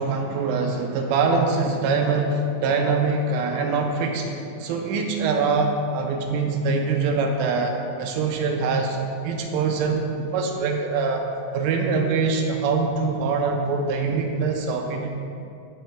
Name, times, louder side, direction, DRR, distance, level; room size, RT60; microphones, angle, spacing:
voice 1, 0.0-4.3 4.6-9.0 9.2-11.3 11.5-15.1, right 4 dB, 80° right, 2 dB, 3.0 m, -23 dB
15.0 x 7.8 x 2.2 m, 2.5 s
omnidirectional pair, 5.9 m